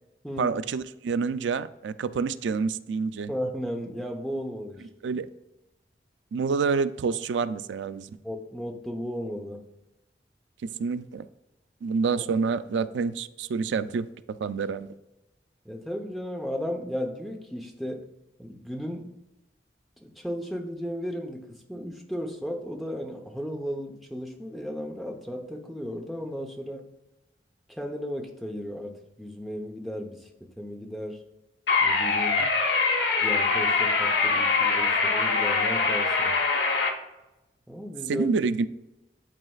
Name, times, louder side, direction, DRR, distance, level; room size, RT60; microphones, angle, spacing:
voice 1, 0.4-3.3 5.0-5.3 6.3-8.2 10.6-11.3 11.8-14.1 14.4-14.9 32.4-32.5 38.1-38.7, right 5 dB, 85° right, 0.4 m, -28 dB
voice 2, 3.3-4.9 5.1-5.2 8.2-9.6 15.6-18.1 18.4-19.1 20.0-26.8 27.8-30.3 30.6-31.2 31.8-32.4 33.2-36.3 37.7-38.3, equal, ahead, 0.7 m, -35 dB
sound 1, 31.7-36.9, left 4 dB, 75° left, 1.0 m, -23 dB
11.0 x 4.1 x 2.3 m
head